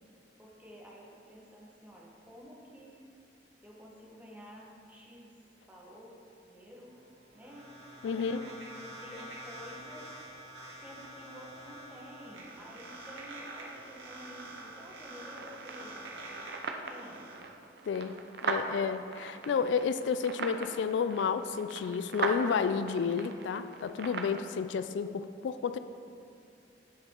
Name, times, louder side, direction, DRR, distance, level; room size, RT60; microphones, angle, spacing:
voice 1, 0.4-3.0 3.6-5.3 5.7-6.2 6.4-6.9 7.3-7.7 8.0-8.6 9.0-10.1 10.8-17.4, equal, 10° right, -3 dB, 1.2 m, -51 dB
sound 1, 6.9-17.3, right 1 dB, 90° right, 1.8 m, -47 dB
voice 2, 8.0-8.4 17.9-18.1 18.4-25.8, left 6 dB, 85° left, 12 dB, 0.3 m, -31 dB
sound 2, 15.3-24.4, right 3 dB, 65° right, 0.6 m, -39 dB
8.0 x 7.6 x 3.6 m, 2.4 s
head